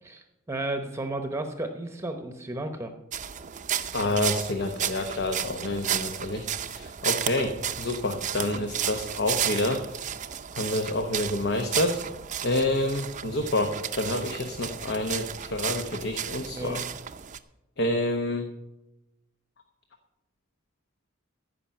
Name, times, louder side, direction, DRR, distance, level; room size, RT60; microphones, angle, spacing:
voice 1, 0.0-2.9 16.5-16.8, right 2 dB, 15° right, 6 dB, 0.9 m, -33 dB
sound 1, 3.1-17.4, right 9 dB, 40° right, 0.6 m, -33 dB
voice 2, 3.9-10.1 10.5-12.0 12.4-16.8 17.8-18.5, left 1 dB, 55° left, 6 dB, 1.1 m, -28 dB
15.0 x 5.6 x 8.6 m, 0.95 s
head